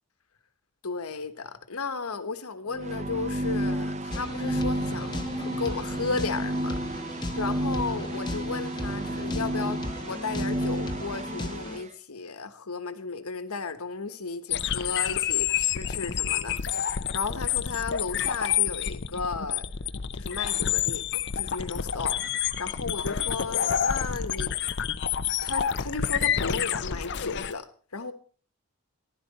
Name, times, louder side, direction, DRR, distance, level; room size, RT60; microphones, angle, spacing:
voice 1, 0.8-7.0 7.4-19.6 20.1-21.0 21.4-22.3 22.6-24.5 25.4-28.1, left 4 dB, 80° left, 10 dB, 1.2 m, -34 dB
sound 1, 2.7-11.8, right 1 dB, 30° right, 0.6 m, -31 dB
sound 2, 4.1-11.8, left 1 dB, 20° left, 1.1 m, -37 dB
sound 3, 14.5-27.5, left 9 dB, 50° left, 0.6 m, -28 dB
14.5 x 11.5 x 4.2 m, 0.41 s
head